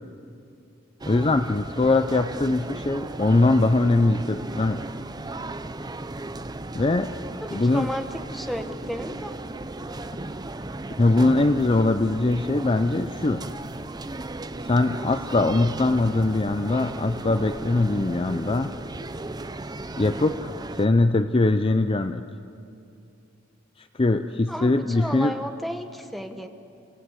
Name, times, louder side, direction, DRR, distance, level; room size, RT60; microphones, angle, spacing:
sound 1, 1.0-20.9, right 2 dB, 20° right, 0.7 m, -35 dB
voice 1, 1.1-4.8 6.7-7.1 7.5-7.9 11.0-13.4 14.6-18.7 20.0-22.2 24.0-25.4, left 2 dB, 30° left, 9 dB, 0.5 m, -22 dB
voice 2, 7.4-9.3 24.5-26.5, equal, ahead, 6 dB, 1.1 m, -33 dB
28.5 x 17.0 x 8.2 m, 2.6 s
head